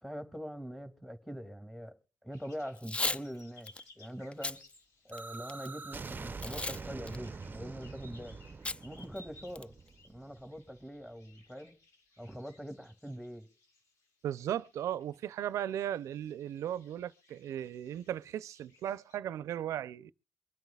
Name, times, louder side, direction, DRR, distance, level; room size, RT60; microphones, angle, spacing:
voice 1, 0.0-4.6 5.0-8.4 8.8-9.7 10.1-11.7 12.2-13.5, equal, 5° left, 2.3 m, -43 dB
sound 1, 2.3-19.2, left 2 dB, 90° left, 2.3 m, -62 dB
Packing tape duct tape / Tearing, 2.7-3.2 3.7-3.8 4.3-4.6 5.1-5.7 6.4-6.8 7.1-7.2 8.6-8.8 9.2-9.3 9.5-9.9, left 2 dB, 20° left, 0.5 m, -35 dB
sound 2, 5.1-10.8, right 4 dB, 40° right, 0.6 m, -45 dB
voice 2, 14.2-20.1, right 11 dB, 90° right, 0.5 m, -36 dB
24.0 x 9.1 x 2.3 m
cardioid pair, 55°, 5 cm